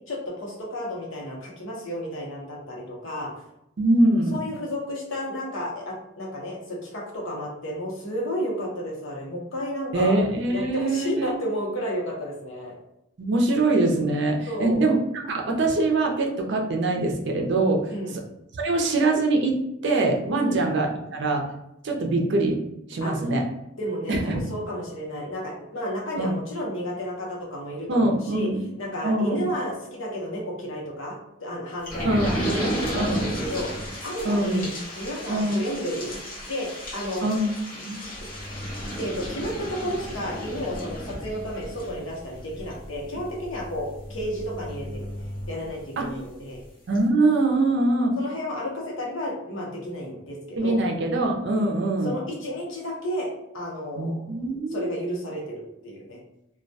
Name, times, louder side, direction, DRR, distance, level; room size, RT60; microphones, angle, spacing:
voice 1, 0.1-3.3 4.3-10.2 10.5-12.7 14.5-14.9 17.9-18.2 20.4-20.6 23.0-23.1 23.8-28.5 28.8-33.7 34.0-34.7 35.0-37.3 38.2-38.3 39.0-45.0 45.5-46.6 48.2-50.8 51.5-51.8 52.0-53.3 53.5-54.2 54.7-56.2, equal, 80° left, -2 dB, 0.8 m, -32 dB
voice 2, 3.8-4.4 9.9-11.3 13.2-15.0 15.2-17.9 18.5-19.6 19.8-21.5 21.8-22.6 22.9-23.4 24.1-24.4 26.2-26.3 27.9-28.6 29.0-29.4 32.0-32.3 32.9-33.3 34.2-34.6 35.3-35.6 37.2-37.5 37.8-38.0 46.0-46.1 46.9-48.1 50.6-52.1 54.0-54.9, right 2 dB, 60° right, 1 dB, 0.5 m, -23 dB
sound 1, 31.8-46.2 46.6-46.7 46.9-47.0, equal, 45° left, 0.8 m, -34 dB
2.2 x 2.1 x 2.6 m, 0.84 s
head